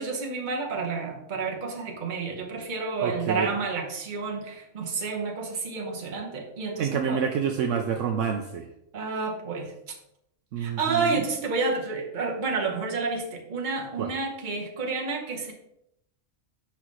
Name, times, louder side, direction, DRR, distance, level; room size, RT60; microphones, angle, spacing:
voice 1, 0.0-7.3 8.9-9.9 10.6-15.5, right 4 dB, 40° right, 1 dB, 1.0 m, -30 dB
voice 2, 3.0-3.5 6.8-8.7 10.5-11.2 14.0-14.1, right 7 dB, 70° right, 3 dB, 0.9 m, -28 dB
5.9 x 5.6 x 3.1 m, 0.79 s
omnidirectional pair, 1.4 m